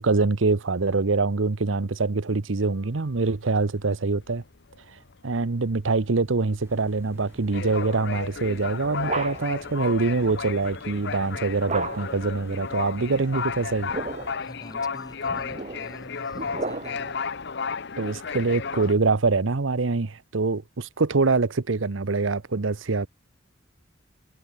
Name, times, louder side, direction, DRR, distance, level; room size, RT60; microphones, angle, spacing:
voice 1, 0.0-4.4 5.2-13.9 18.0-23.1, right 3 dB, 80° right, 0.9 m, -24 dB
sound 1, 2.6-3.9 4.2-4.4 4.7-18.9, left 5 dB, 60° left, 1.0 m, -33 dB
sound 2, 6.6-14.4, equal, 15° right, 2.0 m, -48 dB
sound 3, 9.0-9.7 11.7-12.3 13.6-14.5 15.3-17.2, right 3 dB, 35° right, 1.9 m, -34 dB
voice 2, 14.4-17.2, left 1 dB, 20° left, 3.9 m, -46 dB
head